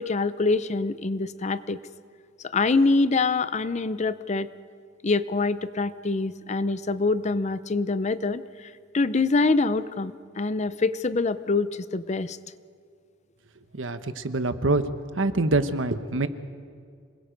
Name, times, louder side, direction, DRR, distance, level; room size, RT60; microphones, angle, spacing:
voice 1, 0.0-1.8 2.4-4.5 5.0-12.4, left 3 dB, 35° left, 15 dB, 0.6 m, -25 dB
voice 2, 13.7-14.9 15.2-16.3, right 2 dB, 85° right, 11 dB, 1.1 m, -25 dB
27.0 x 21.0 x 5.2 m, 2.2 s
head